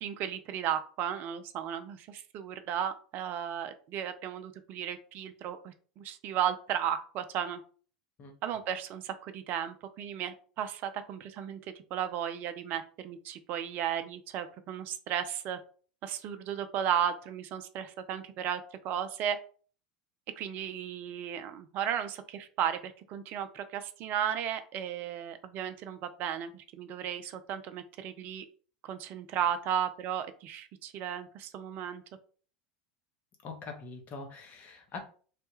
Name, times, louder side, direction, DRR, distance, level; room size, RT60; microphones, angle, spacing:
voice 1, 0.0-7.6 8.4-11.6 11.9-15.6 16.0-19.4 20.4-28.4 28.8-32.0, right 9 dB, 45° right, 9 dB, 0.4 m, -34 dB
voice 2, 33.4-35.0, left 4 dB, 40° left, 4 dB, 0.9 m, -43 dB
3.2 x 2.2 x 3.0 m, 0.41 s
hypercardioid pair, 80°, 4 cm